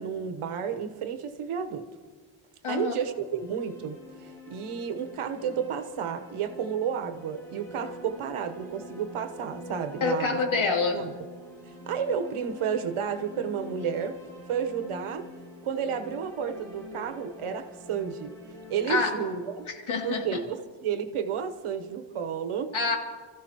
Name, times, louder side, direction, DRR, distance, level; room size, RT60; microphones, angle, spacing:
voice 1, 0.0-1.9 2.7-10.4 10.9-11.1 11.9-14.2 14.5-15.3 15.6-18.3 18.7-19.7 20.0-22.7, right 7 dB, 80° right, 7 dB, 1.2 m, -31 dB
voice 2, 2.6-2.9 10.0-11.0 18.9-19.1 19.9-20.3 22.7-23.0, left 4 dB, 70° left, 1 dB, 2.6 m, -26 dB
sound 1, 3.1-21.1, left 1 dB, 5° left, 4.8 m, -45 dB
29.5 x 14.5 x 3.0 m, 1.5 s
wide cardioid pair, 155°, 49 cm